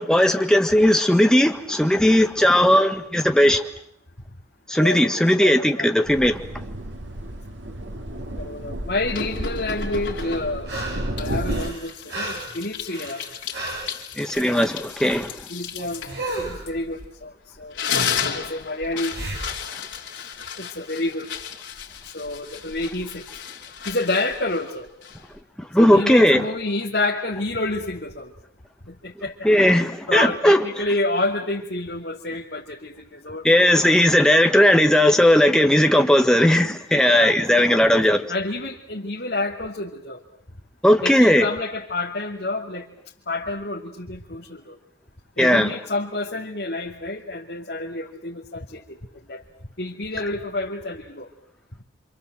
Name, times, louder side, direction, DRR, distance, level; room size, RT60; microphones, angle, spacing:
voice 1, 0.0-3.6 4.7-6.4 14.2-15.4 25.6-26.4 29.4-30.6 33.4-38.3 40.8-41.5 45.4-45.7, left 1 dB, 5° left, 1.6 m, -17 dB
voice 2, 4.8-5.9 8.3-10.7 11.2-13.2 15.5-16.0 16.4-17.8 18.3-19.1 20.2-20.3 20.6-21.3 22.1-23.3 23.9-24.9 25.8-28.3 28.9-29.5 30.1-33.7 37.1-40.2 41.0-42.9 43.3-44.7 45.4-49.0 49.3-49.4 49.8-51.3, left 2 dB, 60° left, 2.6 m, -29 dB
sound 1, 6.1-11.7, right 1 dB, 90° right, 2.5 m, -32 dB
sound 2, 9.1-10.7 11.2-17.2 17.6-25.4, left 7 dB, 90° left, 3.5 m, -33 dB
sound 3, 10.2-11.1 11.4-14.0 16.1-16.7 19.1-19.6 22.5-22.6, right 2 dB, 65° right, 7.6 m, -33 dB
27.0 x 27.0 x 7.8 m
head